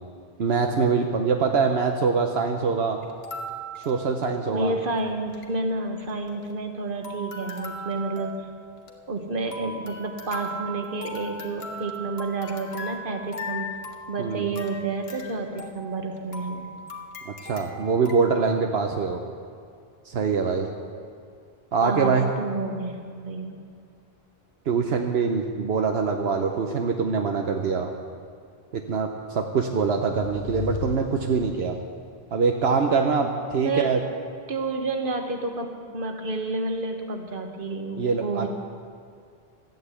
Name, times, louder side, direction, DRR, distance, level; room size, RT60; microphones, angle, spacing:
voice 1, 0.4-3.0 3.8-4.7 14.2-14.4 17.3-19.2 20.0-20.7 21.7-22.3 24.7-27.9 28.7-31.7 32.3-34.0 38.0-38.5, right 5 dB, 80° right, 3 dB, 1.1 m, -24 dB
sound 1, 3.0-4.7 5.0-5.1 5.3-5.5 6.0-6.8 7.0-18.5, equal, 75° left, 1.5 m, -39 dB
voice 2, 4.5-8.4 9.1-13.7 14.1-16.7 21.8-23.6 33.6-33.9 34.5-38.5, right 3 dB, 60° right, 4 dB, 1.5 m, -30 dB
sound 2, 29.5-31.9, left 4 dB, 45° left, 1.0 m, -36 dB
13.5 x 9.3 x 8.2 m, 2.2 s
omnidirectional pair, 1.0 m